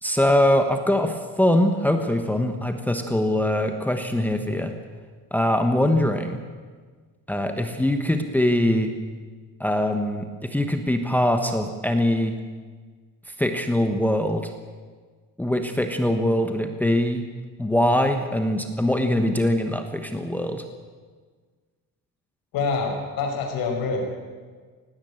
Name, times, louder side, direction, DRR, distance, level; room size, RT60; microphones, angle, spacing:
voice 1, 0.0-4.7 5.3-6.4 7.3-8.9 9.6-12.4 13.4-14.5 15.4-17.3 17.6-20.6, left 1 dB, 5° left, 6 dB, 1.1 m, -22 dB
voice 2, 22.5-24.0, left 4 dB, 75° left, 2 dB, 5.9 m, -26 dB
18.5 x 16.0 x 8.9 m, 1.5 s
cardioid pair, 155°, 36 cm